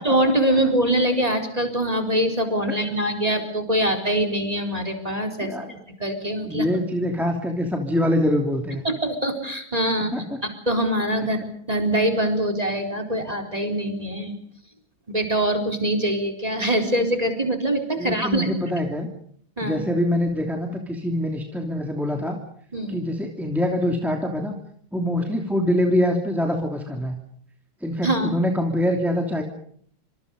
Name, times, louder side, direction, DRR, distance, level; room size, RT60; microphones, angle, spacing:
voice 1, 0.0-5.5 6.0-6.7 8.8-10.1 10.4-11.4 11.7-14.4 15.1-18.5 19.6-19.8 22.7-23.0 28.0-28.3, right 1 dB, 15° right, 7 dB, 4.2 m, -23 dB
voice 2, 5.4-5.8 6.5-8.8 10.1-10.2 18.0-19.1 19.6-22.4 22.9-24.5 24.9-27.2 27.8-29.4, left 1 dB, ahead, 2 dB, 2.8 m, -24 dB
27.0 x 26.5 x 5.4 m, 0.63 s
omnidirectional pair, 2.3 m